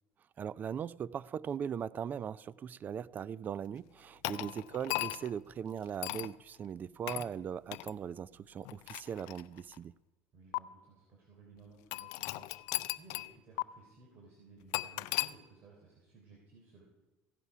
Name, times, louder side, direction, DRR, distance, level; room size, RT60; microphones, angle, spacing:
voice 1, 0.4-9.9, right 8 dB, 35° right, 0.4 m, -39 dB
sound 1, 4.2-5.4 6.0-6.3 7.1-7.3 7.7-7.9 8.6-9.8 10.5-10.6 11.9-13.3 13.6-13.7 14.7-15.3, left 20 dB, 70° left, 0.4 m, -36 dB
voice 2, 4.2-4.6 7.0-7.2 10.3-16.8, right 4 dB, 50° right, 3.6 m, -58 dB
16.0 x 11.0 x 4.9 m
supercardioid pair, 100°, 5 cm